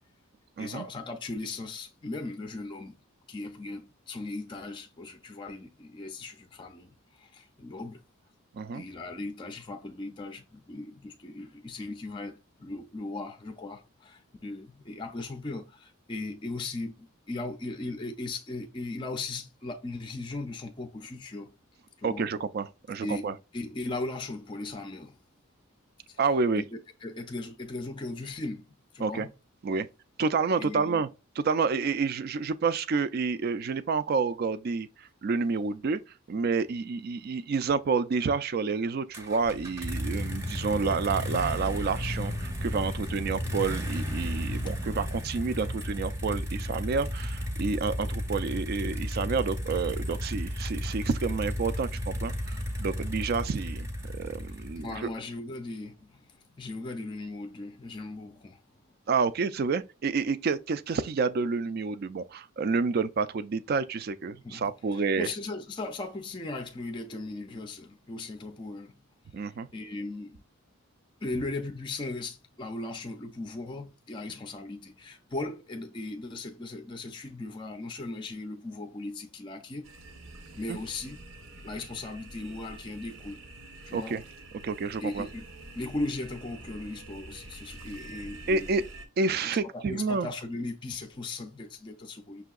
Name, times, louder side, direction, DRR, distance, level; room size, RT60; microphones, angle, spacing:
voice 1, 0.6-3.0 3.3-8.0 8.7-21.5 22.0-22.3 23.0-25.2 26.1-26.2 26.5-28.7 28.9-29.3 30.6-31.0 54.5-58.6 64.4-68.9 69.4-70.4 71.2-79.9 80.6-81.2 81.6-83.4 83.9-84.2 85.0-85.4 85.7-88.8 89.4-92.4, left 2 dB, 25° left, 0.4 m, -38 dB
voice 2, 8.5-8.8 22.0-23.3 26.2-26.6 29.0-29.3 29.6-29.9 30.2-31.1 31.4-36.0 36.3-54.9 59.1-65.3 69.3-69.7 80.7-80.8 83.9-84.2 84.6-85.3 88.5-88.8 89.2-90.3, right 4 dB, 45° right, 0.3 m, -29 dB
sound 1, 39.1-55.1, equal, 10° right, 0.7 m, -33 dB
sound 2, 39.4-45.1, left 5 dB, 90° left, 0.4 m, -50 dB
sound 3, 79.8-89.1, right 2 dB, 70° right, 0.8 m, -47 dB
5.9 x 2.7 x 2.3 m
head